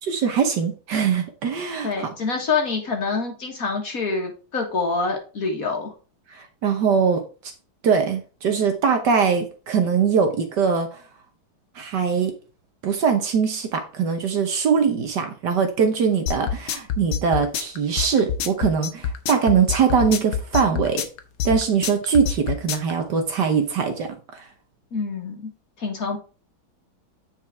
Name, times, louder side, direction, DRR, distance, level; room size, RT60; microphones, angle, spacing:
voice 1, 0.0-2.1 6.3-7.2 7.8-11.0 11.7-12.3 12.8-21.1 21.4-24.4, right 6 dB, 60° right, 1.5 m, -22 dB
voice 2, 1.8-5.9 24.9-25.5 25.8-26.2, left 4 dB, 45° left, 1.8 m, -26 dB
sound 1, 16.3-22.9, left 8 dB, 75° left, 1.7 m, -26 dB
9.0 x 4.8 x 3.5 m
omnidirectional pair, 2.3 m